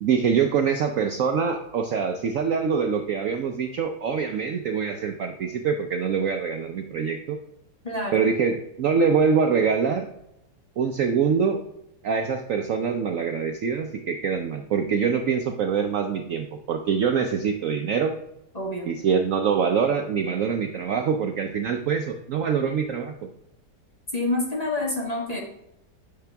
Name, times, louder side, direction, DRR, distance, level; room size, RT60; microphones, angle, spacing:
voice 1, 0.0-7.4 8.1-10.1 10.8-11.6 12.0-18.1 18.9-23.1, right 6 dB, 65° right, 5 dB, 0.8 m, -24 dB
voice 2, 7.8-8.3 18.5-18.9 24.1-25.4, left 2 dB, 25° left, -2 dB, 1.3 m, -27 dB
8.6 x 5.8 x 3.3 m, 0.84 s
omnidirectional pair, 1.8 m